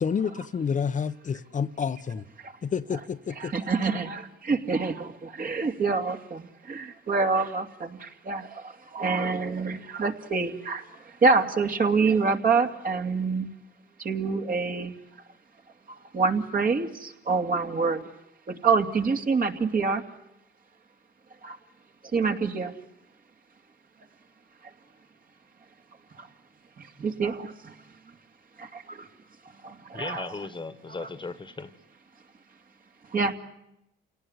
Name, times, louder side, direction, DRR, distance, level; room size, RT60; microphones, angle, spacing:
voice 1, 0.0-2.3 2.6-3.5, left 6 dB, 40° left, 0.9 m, -29 dB
voice 2, 3.4-4.2 4.5-5.1 5.4-7.9 8.3-8.4 8.9-10.8 11.2-13.5 14.0-14.9 16.1-16.9 17.3-18.0 18.6-20.0 22.1-22.7 27.0-27.3 30.0-30.3 31.0-31.1 33.1-33.3, right 4 dB, 45° right, 2.6 m, -25 dB
voice 3, 29.9-31.7, left 3 dB, 25° left, 1.5 m, -36 dB
28.0 x 18.5 x 9.7 m
cardioid pair, 90°, 20 cm